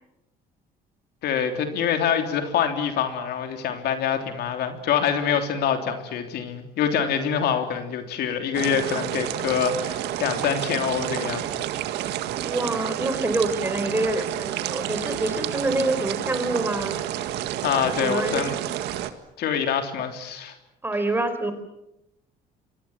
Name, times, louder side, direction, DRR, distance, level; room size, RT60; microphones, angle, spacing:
voice 1, 1.2-11.7 17.6-18.5 19.4-20.5, left 7 dB, 75° left, 6 dB, 3.4 m, -25 dB
sound 1, 8.5-19.1, right 12 dB, 85° right, 1.9 m, -30 dB
voice 2, 12.4-17.0 17.9-18.5 20.8-21.5, right 2 dB, 10° right, 9 dB, 4.4 m, -26 dB
27.5 x 23.5 x 7.4 m, 0.88 s
cardioid pair, 110°, 17 cm